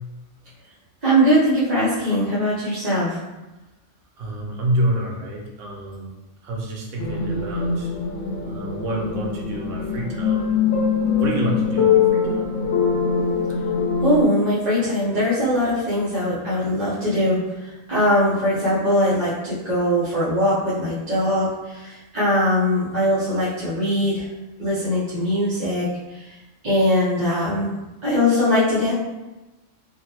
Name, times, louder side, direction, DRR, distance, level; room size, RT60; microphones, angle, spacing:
voice 1, 1.0-3.2 14.0-24.3 24.6-26.3 26.6-27.7 28.0-28.9, equal, 40° right, -11 dB, 0.8 m, -21 dB
voice 2, 4.2-6.1 6.4-7.9 8.4-10.4 10.9-12.4, right 1 dB, 75° right, -1 dB, 1.0 m, -28 dB
sound 1, 7.0-14.2, left 6 dB, 65° left, 0.9 m, -22 dB
3.8 x 2.1 x 2.8 m, 1.1 s
omnidirectional pair, 1.3 m